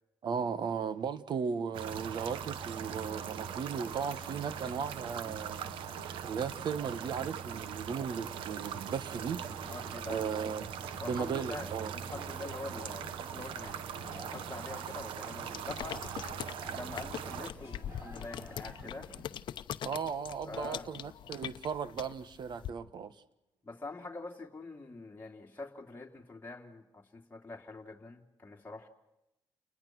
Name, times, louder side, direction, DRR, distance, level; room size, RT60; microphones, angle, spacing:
voice 1, 0.2-5.6 6.2-9.7 10.1-10.7 11.1-11.9 19.8-23.1, right 6 dB, 60° right, 1.5 m, -36 dB
sound 1, 1.7-17.5, right 9 dB, 85° right, 1.2 m, -41 dB
sound 2, 1.9-19.2, right 1 dB, 30° right, 6.4 m, -50 dB
voice 2, 9.7-10.4 11.0-16.0 16.7-19.1 20.4-20.9 23.6-28.9, left 3 dB, 20° left, 3.0 m, -45 dB
sound 3, 15.5-22.7, left 10 dB, 70° left, 0.8 m, -42 dB
30.0 x 20.5 x 6.1 m
cardioid pair, 80°, 8 cm